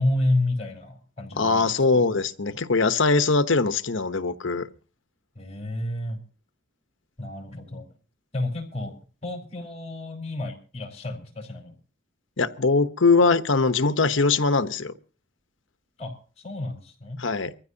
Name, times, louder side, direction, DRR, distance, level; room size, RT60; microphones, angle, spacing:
voice 1, 0.0-2.1 5.3-6.2 7.2-7.9 8.3-8.9 9.2-11.7 16.0-17.2, left 1 dB, 30° left, 4.5 m, -30 dB
voice 2, 1.4-4.7 12.4-14.9 17.2-17.5, left 4 dB, 65° left, 0.9 m, -21 dB
24.0 x 15.0 x 2.8 m
head